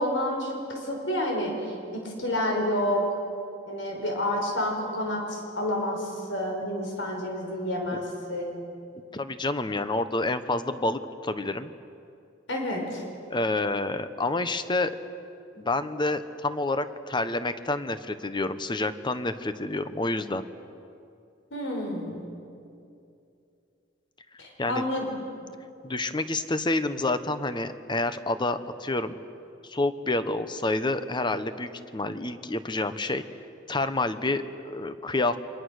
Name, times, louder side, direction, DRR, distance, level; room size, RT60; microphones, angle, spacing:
voice 1, 0.0-3.0 3.7-8.6 12.5-13.0 21.5-22.2 24.4-25.2, left 1 dB, 80° left, 1 dB, 5.1 m, -29 dB
voice 2, 9.1-11.7 13.3-14.9 15.6-20.5 24.6-24.8 25.8-29.1 29.6-33.2 33.7-35.4, left 2 dB, 25° left, 11 dB, 1.0 m, -28 dB
28.5 x 24.5 x 6.6 m, 2.6 s
head